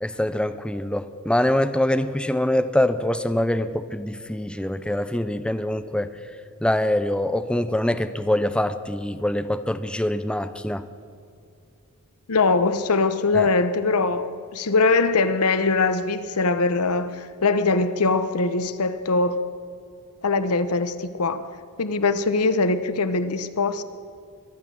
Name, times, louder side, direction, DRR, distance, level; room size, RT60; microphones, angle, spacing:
voice 1, 0.0-6.1 6.6-10.8 13.3-13.5, left 1 dB, 5° left, 0.5 m, -24 dB
voice 2, 12.3-19.4 20.2-21.5 21.8-23.8, left 3 dB, 80° left, 0.9 m, -22 dB
23.5 x 8.3 x 7.3 m
head